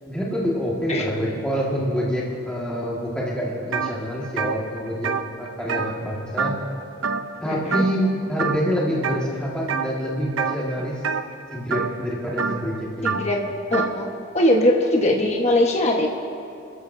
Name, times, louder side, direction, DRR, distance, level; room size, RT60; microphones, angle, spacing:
voice 1, 0.1-5.1 5.4-6.5 7.4-11.0 11.5-13.3, equal, 5° left, -6 dB, 1.8 m, -26 dB
sound 1, 3.7-3.9 4.2-6.8 7.0-7.4 7.7-8.1 8.4-9.2 9.7-10.0 10.3-14.0, right 5 dB, 75° right, 0.7 m, -27 dB
voice 2, 7.4-7.8 13.0-13.4 13.7-14.1 14.3-16.1, left 1 dB, 30° left, 0 dB, 1.3 m, -20 dB
27.5 x 14.0 x 2.7 m, 2.6 s
head